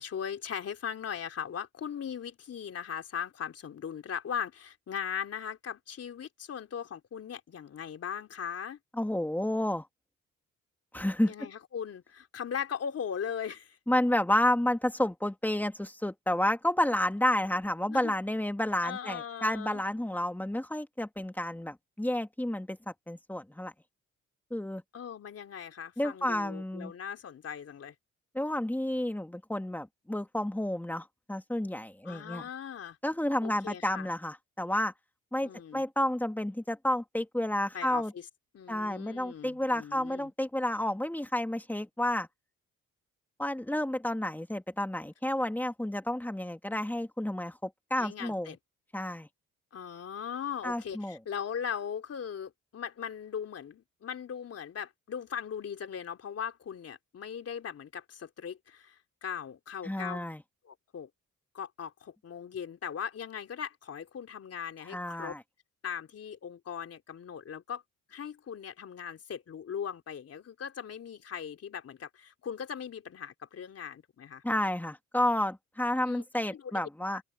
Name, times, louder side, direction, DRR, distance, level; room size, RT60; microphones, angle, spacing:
voice 1, 0.0-8.8 11.3-13.8 17.9-18.1 18.8-19.8 24.9-28.0 32.1-33.0 33.4-34.1 35.4-35.8 37.7-38.3 38.5-40.3 48.0-48.6 49.7-60.2 60.7-61.1 61.5-65.4 65.8-67.8 68.1-74.4 76.1-76.2 76.5-76.7 77.1-77.2, left 8 dB, 55° left, 3.6 m, -39 dB
voice 2, 9.0-9.9 10.9-11.3 13.9-23.7 24.5-24.8 26.0-26.9 28.3-32.4 33.0-34.9 35.3-38.1 38.7-42.3 43.4-48.6 48.9-49.3 50.6-51.2 59.8-60.4 64.9-65.4 74.4-77.2, left 1 dB, 5° left, 2.5 m, -30 dB
cardioid pair, 90°, 30 cm